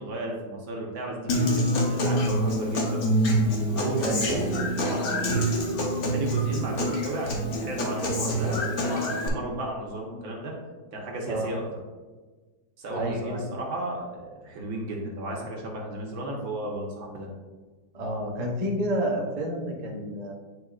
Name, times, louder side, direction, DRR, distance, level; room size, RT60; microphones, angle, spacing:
voice 1, 0.0-3.2 3.8-5.5 6.1-10.5 10.9-11.8 12.8-17.3, right 1 dB, 80° right, -1 dB, 1.9 m, -34 dB
Human voice / Acoustic guitar, 1.3-9.3, equal, 55° left, 1.3 m, -26 dB
voice 2, 4.0-4.4 11.3-11.6 12.9-13.5 17.9-20.3, equal, 35° right, -1 dB, 0.6 m, -30 dB
9.3 x 4.7 x 2.4 m, 1.3 s
omnidirectional pair, 2.1 m